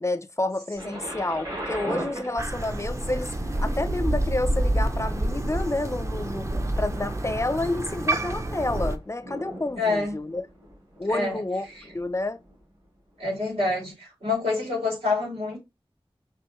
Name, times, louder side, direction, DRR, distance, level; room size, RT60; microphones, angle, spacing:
voice 1, 0.0-3.3 3.6-6.5 6.8-10.5 11.0-11.7 11.9-12.4, left 2 dB, 30° left, 0.4 m, -29 dB
Thunder, 0.8-12.6 13.4-13.5, right 1 dB, 50° right, 3.0 m, -40 dB
Crow, 2.4-9.0, right 1 dB, 30° right, 0.5 m, -28 dB
voice 2, 9.8-10.2 11.1-11.4 13.2-15.6, left 3 dB, 85° right, 3.0 m, -27 dB
4.8 x 2.9 x 3.0 m
wide cardioid pair, 55°, 10 cm